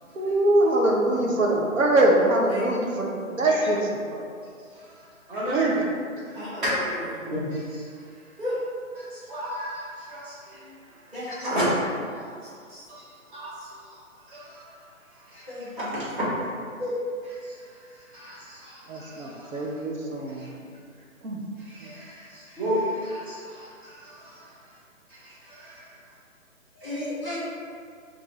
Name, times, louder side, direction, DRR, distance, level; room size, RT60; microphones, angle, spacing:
voice 1, 0.1-3.1 3.4-4.3 5.5-5.7 18.9-20.5 21.2-21.4 21.8-21.9, right 1 dB, 70° right, -1 dB, 0.7 m, -23 dB
voice 2, 5.3-5.8 6.2-6.7 7.2-7.8 9.0-10.6 11.3-11.6 12.1-12.3 12.7-13.0 13.3-13.7 14.3-14.6 15.3-15.5 15.9-16.0 17.4-17.5 18.1-19.7 20.4-20.5 21.6-24.4 25.1-25.8 26.8-26.9, equal, 40° right, -9 dB, 1.3 m, -33 dB
voice 3, 6.3-7.1 8.4-8.6 11.1-11.6 15.5-15.9 16.8-16.9 26.7-27.4, left 1 dB, 10° right, -13 dB, 0.8 m, -33 dB
3.5 x 2.5 x 3.1 m, 2.2 s
figure-of-eight pair, 150°, 41 cm